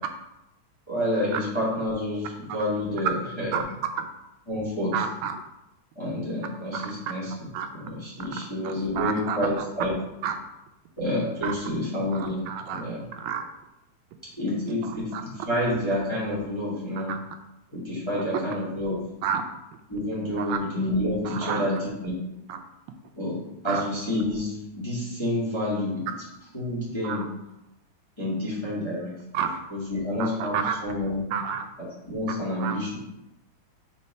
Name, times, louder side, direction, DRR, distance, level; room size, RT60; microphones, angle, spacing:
voice 1, 0.9-3.6 4.5-5.0 5.9-10.0 11.0-13.1 14.4-17.1 17.7-19.0 19.9-22.2 23.2-23.4 23.6-26.0 26.5-27.3 28.2-29.1 29.7-31.2 31.8-33.0, left 1 dB, 15° left, -7 dB, 1.3 m, -29 dB
voice 2, 4.9-5.4 6.7-6.9 7.5-7.7 8.6-9.4 10.2-10.4 11.4-11.5 12.1-12.8 13.1-13.4 15.1-15.2 17.1-17.2 19.2-19.4 20.4-20.6 21.3-21.6 22.5-22.6 23.7-23.8 27.0-27.3 29.3-29.6 30.2-30.8 31.3-31.7 32.3-32.8, right 8 dB, 80° right, 6 dB, 1.8 m, -30 dB
4.4 x 4.3 x 5.3 m, 0.90 s
omnidirectional pair, 3.3 m